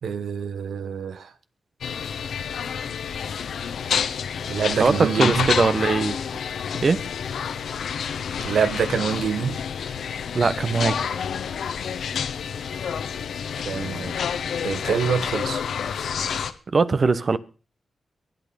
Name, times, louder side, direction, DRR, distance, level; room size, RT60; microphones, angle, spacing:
voice 1, 0.0-1.3 4.5-5.5 8.4-9.6 13.6-14.2 14.6-15.6, right 6 dB, 80° right, 1.1 m, -26 dB
sound 1, 1.8-16.5, left 7 dB, 85° left, 1.1 m, -29 dB
voice 2, 4.8-6.2 6.8-7.0 10.3-11.0 16.7-17.4, right 4 dB, 55° right, 1.2 m, -20 dB
23.0 x 8.8 x 5.3 m
supercardioid pair, 45°, 0 cm